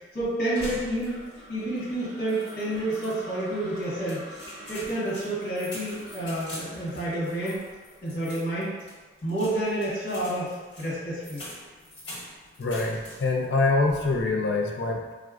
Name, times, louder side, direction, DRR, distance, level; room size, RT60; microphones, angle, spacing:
voice 1, 0.1-1.2 1.5-4.2 4.7-7.6 8.0-8.7 9.2-11.5, right 1 dB, 50° left, -8 dB, 1.0 m, -29 dB
sound 1, 0.6-1.5 1.8-1.9 2.3-3.2 3.8-13.5 13.8-14.3, equal, 30° left, 1.2 m, -44 dB
sound 2, 1.0-9.2, equal, 15° right, 1.0 m, -46 dB
voice 2, 12.6-15.1, left 3 dB, 65° left, 1 dB, 0.4 m, -25 dB
3.5 x 2.3 x 2.4 m, 1.3 s
head